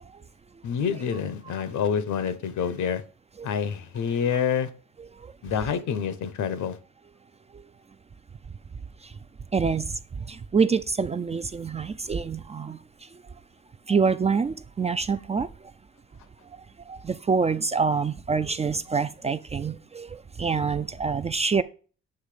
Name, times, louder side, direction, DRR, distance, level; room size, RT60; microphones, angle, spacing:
voice 1, 0.6-3.0 3.4-4.7 5.4-6.8, left 7 dB, 70° left, 0.9 m, -27 dB
voice 2, 9.5-9.9 10.5-12.8 13.9-15.5 16.9-20.1 20.4-21.6, right 5 dB, 20° right, 0.3 m, -25 dB
8.1 x 3.1 x 4.9 m
cardioid pair, 90°, 30 cm